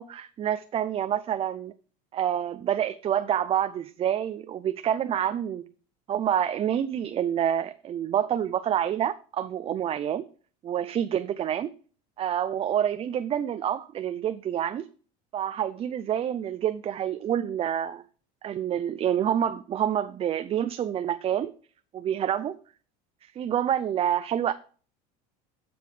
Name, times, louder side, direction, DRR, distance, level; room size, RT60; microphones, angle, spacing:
voice 1, 0.0-1.7 2.1-5.6 6.1-10.2 10.6-11.7 12.2-14.9 15.3-18.0 18.4-21.5 21.9-22.6 23.4-24.5, right 10 dB, 30° right, 11 dB, 0.5 m, -27 dB
15.5 x 5.2 x 3.3 m, 0.41 s
supercardioid pair, 120°, 18 cm